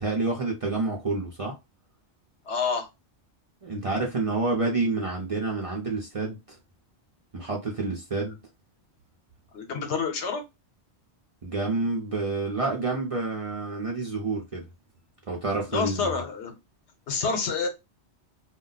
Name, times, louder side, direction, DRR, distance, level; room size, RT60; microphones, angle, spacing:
voice 1, 0.0-1.5 3.6-6.6 7.3-8.4 11.4-14.6 15.3-16.2, right 3 dB, 40° right, 0.5 m, -28 dB
voice 2, 2.5-2.9 9.5-10.4 15.7-16.5 17.1-17.7, left 5 dB, 75° left, 1.0 m, -28 dB
2.3 x 2.0 x 3.8 m
omnidirectional pair, 1.2 m